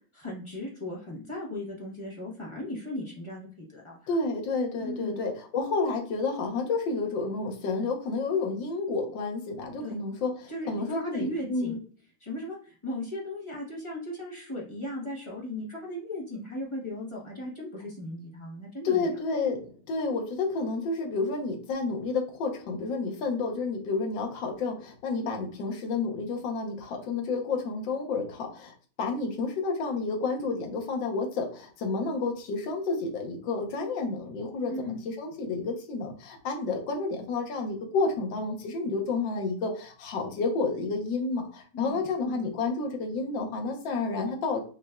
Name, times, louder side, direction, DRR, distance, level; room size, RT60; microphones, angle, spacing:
voice 1, 0.1-4.1 4.8-5.2 9.8-10.0 10.5-11.8 12.2-19.1 25.2-25.3 34.7-35.0 41.7-42.5, left 1 dB, 25° left, -4 dB, 0.7 m, -37 dB
voice 2, 4.1-11.8 18.8-44.8, left 3 dB, 75° left, 3 dB, 1.6 m, -30 dB
5.8 x 2.5 x 2.2 m, 0.41 s
omnidirectional pair, 2.1 m